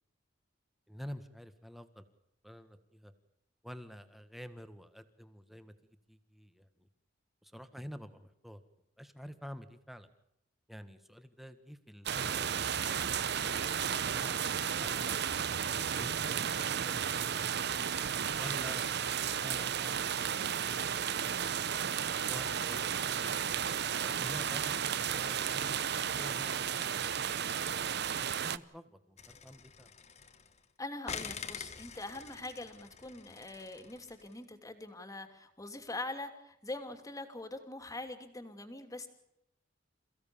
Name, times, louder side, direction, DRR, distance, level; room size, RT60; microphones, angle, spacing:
voice 1, 0.9-2.0 2.4-3.1 3.6-5.7 6.1-6.9 7.4-8.6 9.0-10.1 10.7-12.9 13.2-13.6 14.1-15.2 16.0-17.8 18.4-20.8 22.3-23.5 24.0-25.6 25.9-27.1 27.5-27.6 28.1-29.9, equal, ahead, 10 dB, 1.7 m, -49 dB
sound 1, 12.1-28.6, right 8 dB, 60° right, 0.8 m, -33 dB
sound 2, 29.2-30.6 31.1-34.3, left 6 dB, 35° left, 1.6 m, -46 dB
voice 2, 30.8-39.1, left 2 dB, 20° left, 7 dB, 2.8 m, -43 dB
28.5 x 16.5 x 7.1 m, 0.80 s
head